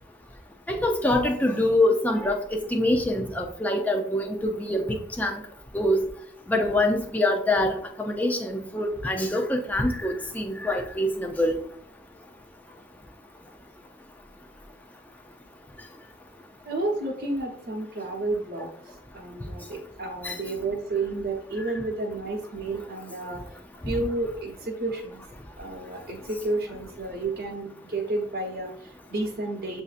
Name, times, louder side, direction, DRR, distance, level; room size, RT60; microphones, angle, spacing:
voice 1, 0.7-5.4 5.7-6.1 6.5-11.6 18.6-18.7 20.2-20.4, left 1 dB, 10° left, 2 dB, 0.5 m, -25 dB
voice 2, 16.6-23.4 23.8-25.2 25.6-29.8, right 2 dB, 55° right, -2 dB, 1.0 m, -31 dB
7.9 x 2.7 x 2.4 m, 0.62 s
head